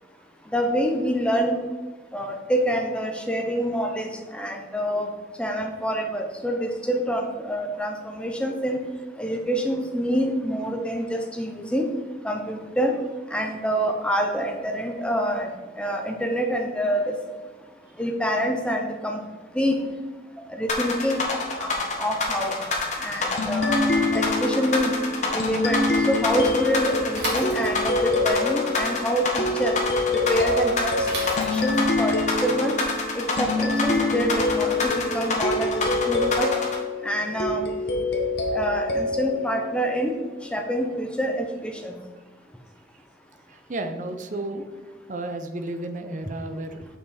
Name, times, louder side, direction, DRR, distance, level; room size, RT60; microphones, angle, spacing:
voice 1, 0.5-1.6 2.1-5.1 5.4-8.8 9.2-11.8 12.2-12.9 13.3-15.5 15.8-17.1 18.0-19.2 19.5-19.8 20.6-21.2 21.6-21.7 22.0-22.5 23.0-23.8 24.1-24.9 25.3-25.8 26.1-29.7 30.1-30.9 31.4-32.1 32.4-32.7 33.4-35.7 36.1-36.5 37.0-37.6 38.5-40.1 40.5-41.9, equal, 5° left, 3 dB, 0.6 m, -26 dB
sound 1, 20.7-36.8, left 3 dB, 40° left, 1.2 m, -27 dB
sound 2, 23.4-40.5, left 2 dB, 65° left, 1.1 m, -26 dB
Bicycle / Mechanisms, 27.1-28.1 31.0-32.0, right 2 dB, 70° right, 2.2 m, -34 dB
voice 2, 43.5-44.7 45.1-46.9, right 2 dB, 45° right, 7 dB, 0.7 m, -33 dB
7.0 x 5.6 x 4.2 m, 1.3 s
head